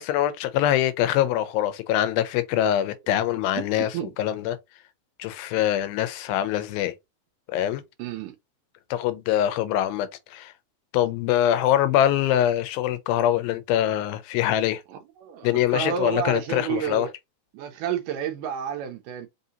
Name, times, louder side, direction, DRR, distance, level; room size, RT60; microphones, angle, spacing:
voice 1, 0.0-3.9 4.2-4.6 5.2-6.9 7.5-7.8 8.9-10.5 10.9-14.8 15.4-17.1, left 11 dB, 90° left, 2.4 m, -24 dB
voice 2, 8.0-8.3 14.9-17.1 17.5-19.3, right 9 dB, 80° right, 2.0 m, -30 dB
5.5 x 2.7 x 2.6 m
omnidirectional pair, 4.2 m